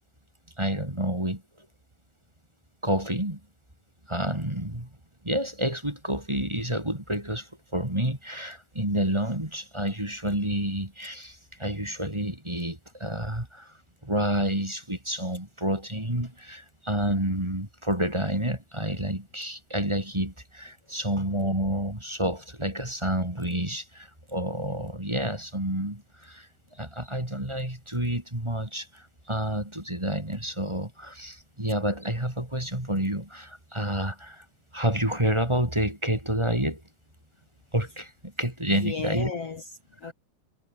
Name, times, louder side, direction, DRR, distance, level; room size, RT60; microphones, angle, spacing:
voice 1, 0.6-1.4 2.8-3.4 4.1-4.9 5.2-13.7 14.0-26.5 26.8-34.4 34.7-36.8 37.7-39.3, right 1 dB, 10° right, 3.0 m, -29 dB
voice 2, 21.1-21.5 38.6-40.1, left 5 dB, 45° left, 3.1 m, -36 dB
omnidirectional pair, 4.1 m